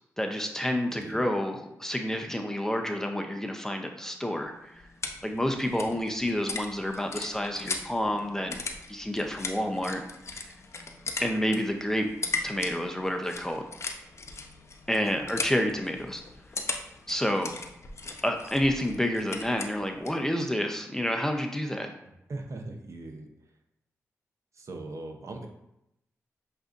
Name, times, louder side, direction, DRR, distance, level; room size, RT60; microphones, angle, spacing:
voice 1, 0.2-4.8 5.2-8.6 8.9-10.5 11.2-12.1 12.4-13.7 14.9-16.2 17.1-17.5 18.2-21.9, equal, 10° left, 3 dB, 0.6 m, -29 dB
voice 2, 0.9-1.2 15.2-15.4 22.3-23.3 24.5-25.5, right 2 dB, 55° right, 3 dB, 0.8 m, -40 dB
sound 1, 4.4-20.3, left 3 dB, 50° left, 0.6 m, -39 dB
7.6 x 2.6 x 2.5 m, 0.84 s
cardioid pair, 60°, 6 cm